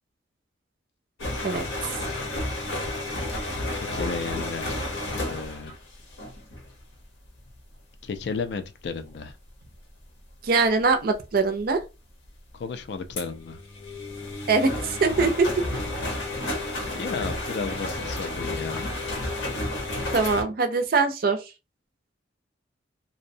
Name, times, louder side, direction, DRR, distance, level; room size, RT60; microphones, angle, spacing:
sound 1, 1.2-6.8 7.3-7.5 8.2-8.4 9.1-9.3 11.1-11.2 11.8-11.9 12.2-12.3 13.2-20.4, left 2 dB, 75° left, 0.8 m, -31 dB
voice 1, 3.7-4.9 5.3-5.8 8.0-9.3 12.5-13.6 16.9-19.0, left 5 dB, 60° left, 0.3 m, -33 dB
voice 2, 10.4-11.8 14.5-15.5 20.1-21.4, right 4 dB, 50° right, 0.4 m, -22 dB
2.6 x 2.0 x 2.6 m
head